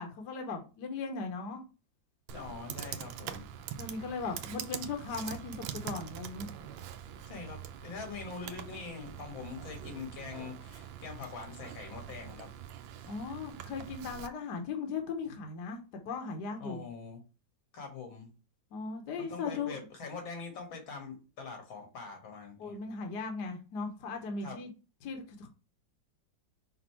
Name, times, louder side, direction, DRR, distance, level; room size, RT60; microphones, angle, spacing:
voice 1, 0.0-1.6 3.8-6.5 13.0-16.8 18.7-19.8 22.6-24.7 25.0-25.5, left 4 dB, 65° left, 4 dB, 1.5 m, -38 dB
voice 2, 2.3-3.5 7.3-12.5 16.6-17.2 17.7-18.3 19.2-22.8 24.4-24.6, left 5 dB, 85° left, 2 dB, 2.4 m, -43 dB
Computer keyboard, 2.3-14.3, right 10 dB, 80° right, 1.4 m, -44 dB
5.2 x 4.2 x 4.3 m, 0.32 s
omnidirectional pair, 2.1 m